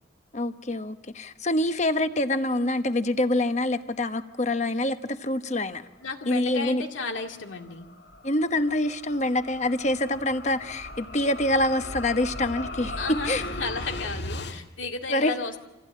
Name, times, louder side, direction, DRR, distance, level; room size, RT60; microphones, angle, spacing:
voice 1, 0.3-5.8 6.3-6.8 8.2-13.5 15.1-15.4, left 1 dB, 40° left, 9 dB, 1.0 m, -26 dB
voice 2, 6.0-7.9 13.0-15.6, left 4 dB, 85° left, 3 dB, 2.2 m, -33 dB
sound 1, 6.8-14.6, left 2 dB, 65° left, 1.7 m, -38 dB
27.0 x 15.5 x 8.6 m, 1.1 s
head